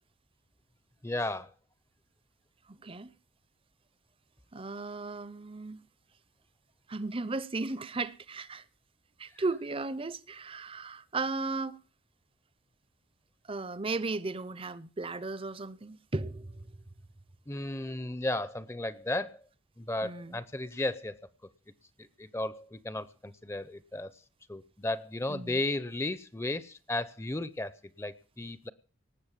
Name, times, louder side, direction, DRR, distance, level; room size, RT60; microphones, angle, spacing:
voice 1, 1.0-1.5 17.5-19.4 19.8-21.1 22.0-24.1 24.5-28.7, left 2 dB, 15° left, 0.6 m, -34 dB
voice 2, 4.5-5.8 6.9-8.6 9.2-11.8 13.5-16.5 20.0-20.4 25.3-25.6, right 3 dB, 25° right, 0.6 m, -35 dB
19.0 x 7.8 x 7.3 m
head